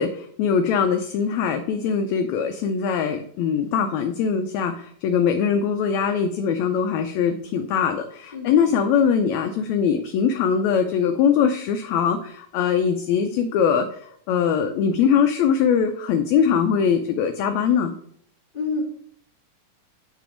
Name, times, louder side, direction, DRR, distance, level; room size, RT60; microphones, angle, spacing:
voice 1, 0.0-13.8 14.3-17.9, left 7 dB, 80° left, 6 dB, 1.6 m, -22 dB
voice 2, 8.3-8.7 18.5-18.8, left 3 dB, 25° left, -4 dB, 1.1 m, -28 dB
9.1 x 3.4 x 4.9 m, 0.64 s
omnidirectional pair, 3.6 m